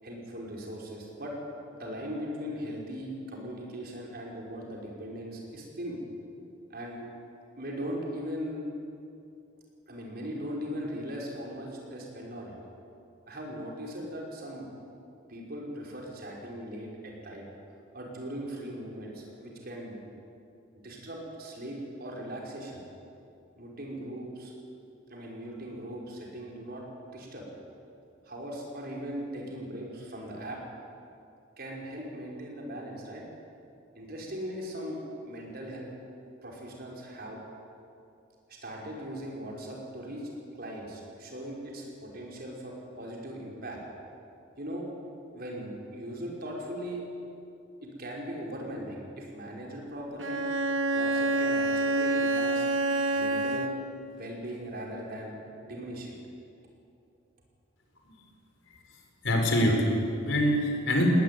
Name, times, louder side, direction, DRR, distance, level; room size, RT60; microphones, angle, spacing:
voice 1, 0.0-1.3 1.7-6.0 6.7-7.1 7.6-8.6 9.9-12.6 13.3-14.7 15.3-17.4 17.9-20.0 20.8-22.8 23.6-24.5 25.1-26.8 27.1-27.5 28.3-30.6 31.6-33.2 33.9-35.9 36.4-37.4 38.5-43.8 44.6-44.9 45.3-47.0 47.8-50.4 50.9-52.7 53.1-53.7 54.1-56.1, equal, 50° right, -2 dB, 5.5 m, -39 dB
Bowed string instrument, 50.2-54.0, right 2 dB, 70° right, 1.4 m, -27 dB
voice 2, 59.2-61.1, equal, 75° left, 2 dB, 4.8 m, -25 dB
19.5 x 19.5 x 9.4 m, 2.6 s
head